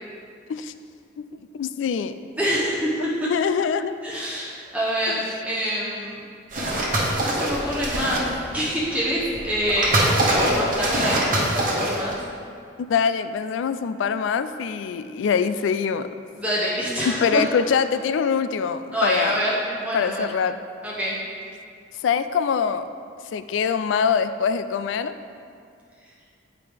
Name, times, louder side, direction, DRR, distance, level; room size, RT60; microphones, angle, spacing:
voice 1, 1.5-2.1 3.2-4.0 5.1-5.2 12.8-16.1 17.0-19.4 19.9-20.6 22.0-22.9 23.3-25.1, left 6 dB, 80° left, 11 dB, 0.3 m, -24 dB
voice 2, 2.4-3.1 4.0-6.2 6.9-8.3 8.5-12.1 16.4-17.4 18.9-20.3 20.8-21.2, equal, 10° right, -6 dB, 0.8 m, -26 dB
sound 1, 6.5-8.5 9.1-12.1, right 1 dB, 45° right, 1.1 m, -23 dB
8.9 x 4.8 x 3.4 m, 2.3 s
head